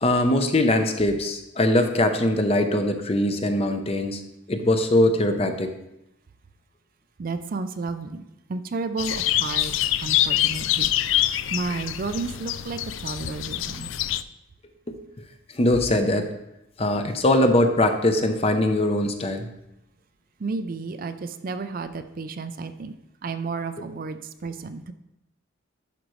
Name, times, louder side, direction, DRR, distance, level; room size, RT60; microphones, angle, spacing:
voice 1, 0.0-4.2 4.5-5.7 14.9-15.0 15.5-16.3 16.8-19.5, left 1 dB, 30° left, 7 dB, 0.6 m, -21 dB
voice 2, 7.2-8.2 8.5-9.7 10.0-10.9 11.2-13.9 20.4-22.9 23.2-24.9, right 4 dB, 45° right, 10 dB, 0.4 m, -32 dB
sound 1, 9.0-14.2, left 12 dB, 70° left, 0.3 m, -25 dB
11.0 x 5.2 x 3.1 m, 0.87 s
head